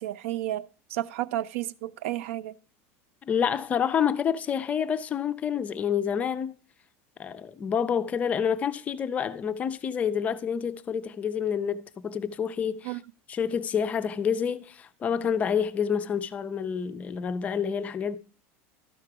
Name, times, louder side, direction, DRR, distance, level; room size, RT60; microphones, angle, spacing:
voice 1, 0.0-2.5 12.8-13.0, right 14 dB, 80° right, 0.4 m, -32 dB
voice 2, 3.3-6.6 7.2-13.0 13.3-18.2, left 7 dB, 20° left, 0.4 m, -28 dB
12.5 x 4.8 x 4.7 m
supercardioid pair, 170°, 7 cm